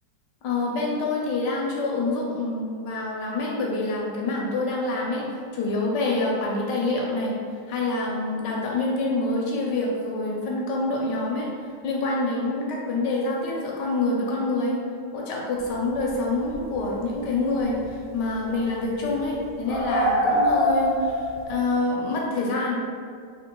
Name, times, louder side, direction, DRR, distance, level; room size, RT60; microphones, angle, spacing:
voice 1, 0.4-5.2 5.5-7.3 7.7-11.5 11.8-14.8 15.1-21.2 21.5-22.8, left 2 dB, 75° left, -2 dB, 1.2 m, -26 dB
sound 1, 16.1-16.2 16.5-16.8 17.7-17.8 18.3-21.5, equal, 90° left, 0.4 m, -24 dB
3.7 x 3.0 x 3.6 m, 2.2 s
omnidirectional pair, 2.1 m